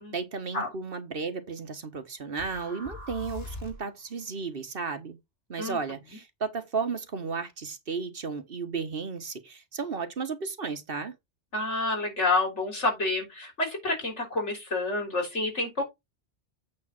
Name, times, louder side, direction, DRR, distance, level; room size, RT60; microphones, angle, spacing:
voice 1, 0.1-5.2 5.5-11.1, right 5 dB, 55° right, 1.4 m, -34 dB
sound 1, 2.4-4.0, left 2 dB, 60° left, 3.7 m, -41 dB
voice 2, 11.5-15.8, left 2 dB, 80° left, 4.0 m, -28 dB
8.7 x 3.5 x 5.8 m
omnidirectional pair, 1.2 m